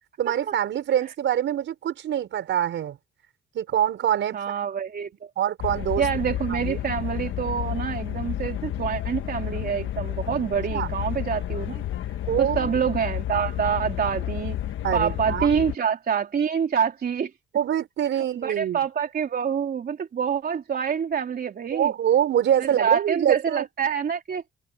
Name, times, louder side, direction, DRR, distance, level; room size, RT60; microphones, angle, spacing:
voice 1, 0.2-3.0 3.5-4.4 5.4-6.0 6.5-6.8 10.7-10.9 12.3-12.7 14.8-15.6 17.5-18.8 21.7-23.7, right 10 dB, 70° right, 5.3 m, -24 dB
voice 2, 4.3-5.1 6.0-11.8 12.4-14.6 14.9-17.3 18.2-21.9 22.6-24.4, right 7 dB, 50° right, 3.5 m, -26 dB
sound 1, 5.6-15.8, left 12 dB, 75° left, 1.3 m, -31 dB
cardioid pair, 90°, 20 cm